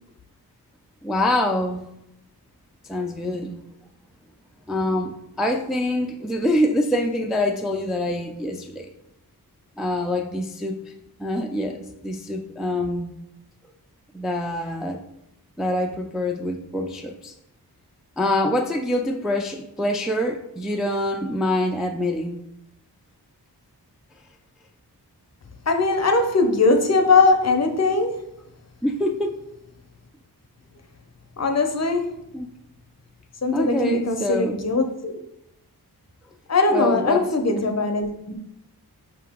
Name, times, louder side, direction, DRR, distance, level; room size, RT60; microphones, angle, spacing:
voice 1, 1.0-1.8 2.8-3.6 4.7-8.9 9.8-10.8 11.2-13.1 14.1-15.0 15.6-17.3 18.2-22.4 28.8-29.4 32.3-32.5 33.5-34.6 36.7-37.7, left 1 dB, ahead, 3 dB, 0.3 m, -25 dB
voice 2, 25.7-28.3 31.4-32.2 33.4-35.2 36.5-38.4, left 3 dB, 40° left, 6 dB, 0.6 m, -20 dB
4.9 x 2.8 x 3.5 m, 0.82 s
wide cardioid pair, 55°, 39 cm